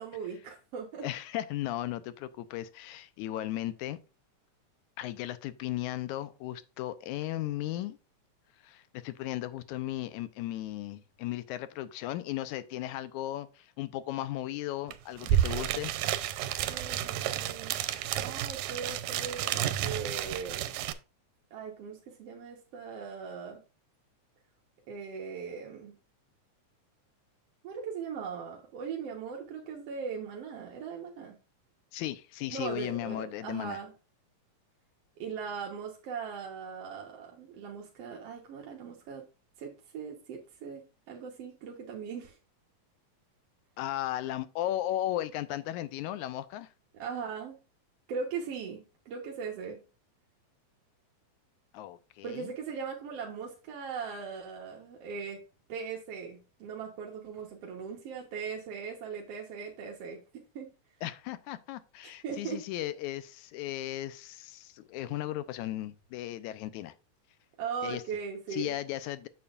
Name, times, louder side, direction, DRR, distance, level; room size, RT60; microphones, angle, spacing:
voice 1, 0.0-1.0 16.6-17.7 18.2-20.7 21.5-23.6 24.9-26.0 27.6-31.3 32.5-33.9 35.2-39.3 39.6-42.4 47.0-47.6 48.1-49.8 52.2-55.4 55.7-60.7 62.0-62.6 67.6-68.8, right 6 dB, 60° right, 2.1 m, -39 dB
voice 2, 1.0-4.0 5.0-8.0 8.6-15.9 31.9-33.8 43.8-46.7 51.7-52.5 61.0-67.0 67.8-68.0 68.5-69.3, left 14 dB, 85° left, 2.0 m, -36 dB
sound 1, 14.9-15.0 15.2-20.9, right 11 dB, 90° right, 2.1 m, -31 dB
8.5 x 6.9 x 2.4 m
omnidirectional pair, 3.4 m